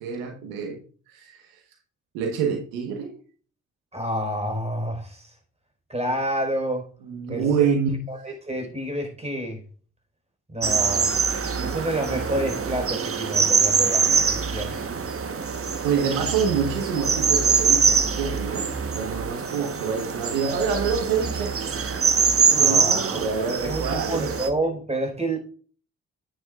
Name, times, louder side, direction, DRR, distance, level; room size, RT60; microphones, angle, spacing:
voice 1, 0.0-0.8 1.1-1.4 2.1-3.1 7.0-8.0 15.8-21.5 22.5-24.3, right 6 dB, 85° right, 3 dB, 1.4 m, -26 dB
voice 2, 3.9-5.3 5.9-6.9 7.3-7.8 8.1-9.6 10.5-11.1 11.6-15.0 22.5-23.2 23.6-25.4, right 1 dB, 20° right, 3 dB, 4.8 m, -29 dB
sound 1, 10.6-24.5, right 5 dB, 40° right, 1.3 m, -24 dB
10.0 x 9.6 x 2.5 m, 0.42 s
hypercardioid pair, 45°, 35 cm